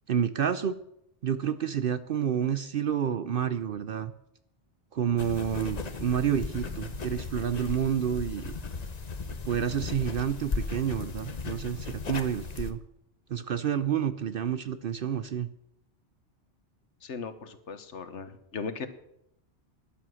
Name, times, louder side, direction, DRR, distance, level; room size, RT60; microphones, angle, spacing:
voice 1, 0.1-0.8 1.2-4.1 4.9-8.6 9.4-12.8 13.3-15.5, right 8 dB, 60° right, 13 dB, 0.7 m, -29 dB
sound 1, 5.2-12.7, left 4 dB, 40° left, 1.0 m, -36 dB
voice 2, 17.0-18.9, left 5 dB, 90° left, 11 dB, 1.5 m, -38 dB
12.5 x 10.5 x 6.3 m, 0.77 s
omnidirectional pair, 1.2 m